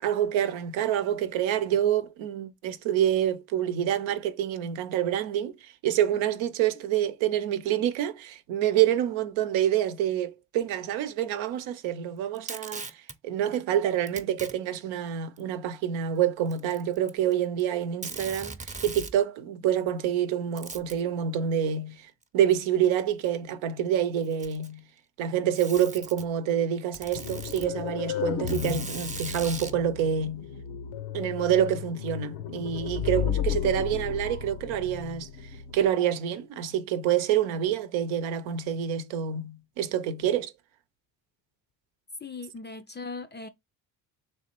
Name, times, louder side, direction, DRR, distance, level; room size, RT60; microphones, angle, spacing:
voice 1, 0.0-12.8 13.2-18.6 18.8-24.8 25.2-30.5 31.1-35.3 35.7-40.5, right 10 dB, 75° right, 0.8 m, -27 dB
Packing tape duct tape, 12.3-13.2 14.1-14.5 15.4-15.5 16.5-17.3 17.6-17.7 18.0-19.2 20.6-21.0 22.2-22.3 23.3-23.4 24.2-24.8 25.5-26.3 26.9-27.7 28.5-29.8, right 3 dB, 15° right, 0.7 m, -39 dB
sound 1, 27.1-35.9, left 8 dB, 85° left, 0.8 m, -33 dB
voice 2, 42.2-43.5, left 3 dB, 25° left, 0.4 m, -39 dB
3.5 x 3.1 x 4.3 m
supercardioid pair, 65°, 46 cm